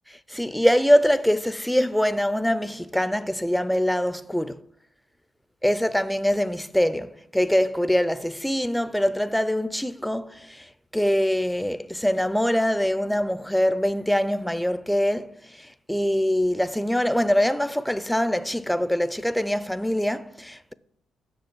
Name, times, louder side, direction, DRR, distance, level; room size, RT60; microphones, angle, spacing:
voice 1, 0.1-4.6 5.6-20.7, equal, 5° left, 0.5 m, -24 dB
7.8 x 6.4 x 7.4 m
cardioid pair, 90°, 0 cm